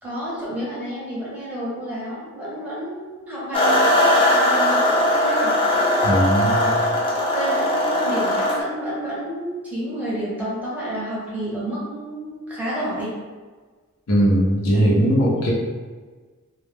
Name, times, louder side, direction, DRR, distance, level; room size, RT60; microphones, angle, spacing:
voice 1, 0.0-5.6 6.6-6.7 7.0-13.1 14.7-15.1 15.3-15.4, right 1 dB, 5° right, -8 dB, 0.8 m, -30 dB
sound 1, 3.5-8.6, left 1 dB, 25° left, 0.5 m, -19 dB
voice 2, 6.0-6.6 14.1-15.5, equal, 70° left, -5 dB, 0.6 m, -19 dB
2.1 x 2.1 x 3.3 m, 1.4 s
head